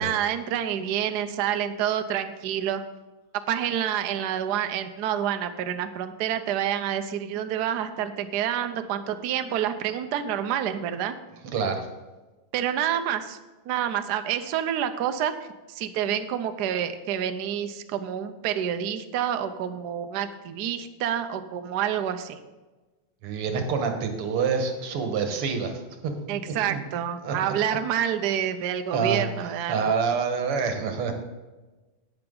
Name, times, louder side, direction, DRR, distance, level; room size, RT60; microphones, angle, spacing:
voice 1, 0.0-2.8 3.5-11.2 12.5-13.4 13.7-15.3 15.7-22.4 26.3-29.9, right 9 dB, 70° right, 8 dB, 1.0 m, -28 dB
voice 2, 11.5-11.9 23.2-26.1 26.5-26.8 27.2-27.5 28.9-31.1, right 5 dB, 85° right, 5 dB, 2.1 m, -27 dB
10.5 x 8.8 x 3.8 m, 1.2 s
omnidirectional pair, 2.4 m